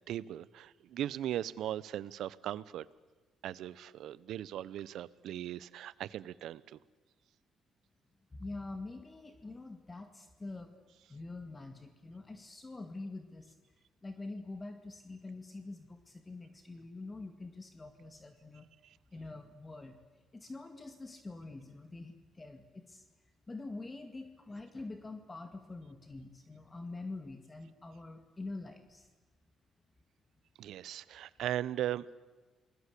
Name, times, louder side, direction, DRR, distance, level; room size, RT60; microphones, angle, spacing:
voice 1, 0.1-2.9 3.4-6.8 18.8-19.0 30.6-32.1, right 12 dB, 80° right, 19 dB, 0.8 m, -38 dB
voice 2, 8.4-10.8 11.1-13.5 14.0-18.7 19.1-20.0 20.3-23.0 23.5-29.1, left 2 dB, 25° left, 7 dB, 2.2 m, -45 dB
29.0 x 21.0 x 8.4 m, 1.2 s
cardioid pair, 90°, 0 cm